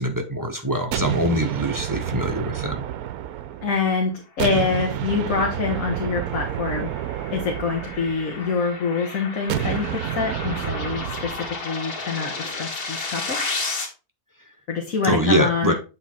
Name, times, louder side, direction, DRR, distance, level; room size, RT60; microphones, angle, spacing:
voice 1, 0.0-2.8 15.1-15.7, equal, 15° right, 4 dB, 0.9 m, -23 dB
sound 1, 0.9-3.9 4.4-8.6 9.5-11.6, right 11 dB, 75° right, 1.1 m, -29 dB
voice 2, 3.6-6.9 7.3-13.4 14.7-15.7, left 4 dB, 60° left, 1 dB, 1.6 m, -25 dB
sound 2, 5.0-13.9, left 3 dB, 85° left, 2.2 m, -33 dB
8.2 x 3.9 x 4.2 m, 0.31 s
omnidirectional pair, 1.6 m